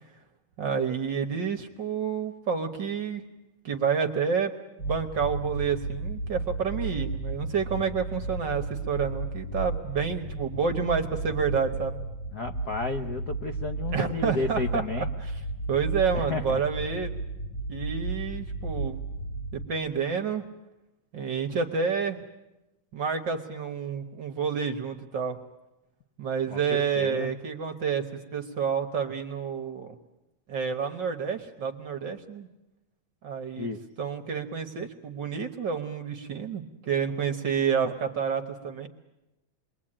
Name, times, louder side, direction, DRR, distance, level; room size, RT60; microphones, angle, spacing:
voice 1, 0.6-3.2 3.6-4.5 4.8-12.0 13.9-14.8 15.3-15.4 15.7-17.2 17.7-19.0 19.5-20.5 21.1-22.2 22.9-25.4 26.2-29.9 30.5-32.5 33.2-33.7 34.0-38.9, right 6 dB, 50° right, 5 dB, 1.5 m, -29 dB
sound 1, 4.8-19.7, right 2 dB, 30° left, 1.6 m, -34 dB
voice 2, 12.3-15.1 16.1-16.6 26.5-27.3 33.6-33.8, left 3 dB, 75° left, 5 dB, 0.8 m, -32 dB
28.0 x 22.0 x 8.8 m, 0.95 s
omnidirectional pair, 3.4 m